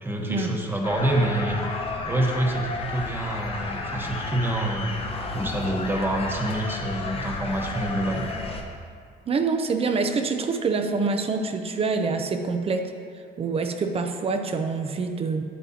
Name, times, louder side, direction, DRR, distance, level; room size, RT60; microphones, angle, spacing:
voice 1, 0.0-1.6 2.1-8.3, right 1 dB, 10° right, 0 dB, 1.1 m, -27 dB
sound 1, 0.8-8.6, left 3 dB, 35° left, 0.9 m, -32 dB
voice 2, 9.3-12.9 13.4-15.4, right 4 dB, 35° right, 6 dB, 0.6 m, -26 dB
8.7 x 8.4 x 2.8 m, 2.2 s
cardioid pair, 110°, 17 cm